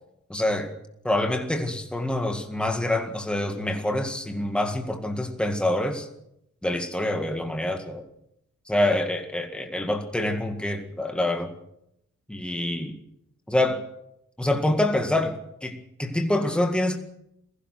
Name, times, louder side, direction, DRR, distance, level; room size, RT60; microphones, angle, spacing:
voice 1, 0.3-0.7 1.0-6.1 6.6-8.0 8.7-11.5 12.3-13.0 13.5-13.8 14.4-15.4 15.6-17.0, left 1 dB, 5° left, 4 dB, 1.9 m, -26 dB
28.0 x 16.0 x 6.2 m, 0.80 s
wide cardioid pair, 160°, 29 cm